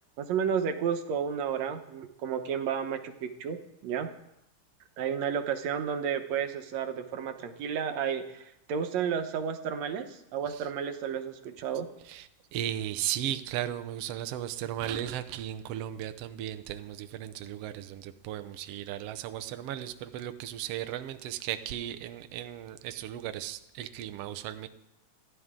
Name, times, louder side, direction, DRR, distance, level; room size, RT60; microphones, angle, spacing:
voice 1, 0.2-3.6 3.8-4.1 5.0-11.9, right 7 dB, 65° right, 7 dB, 2.1 m, -32 dB
voice 2, 12.0-24.7, right 11 dB, 85° right, 10 dB, 1.4 m, -36 dB
27.5 x 11.0 x 3.7 m, 0.83 s
omnidirectional pair, 3.8 m